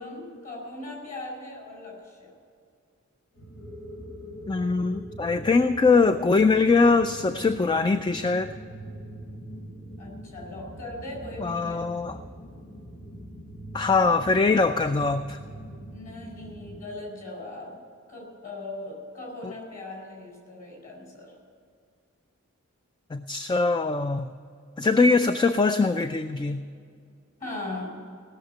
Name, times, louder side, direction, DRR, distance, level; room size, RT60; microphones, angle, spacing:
voice 1, 0.0-2.3 10.0-11.9 15.9-17.8 18.1-21.3 27.4-27.9, left 2 dB, 40° left, -1 dB, 4.6 m, -39 dB
sound 1, 3.3-16.8, equal, 85° left, 4.3 m, -42 dB
voice 2, 4.5-8.5 11.4-12.2 13.7-15.4 19.4-19.5 23.1-24.3 24.8-26.6, left 4 dB, 20° left, 10 dB, 0.3 m, -22 dB
17.5 x 6.6 x 9.1 m, 2.3 s
head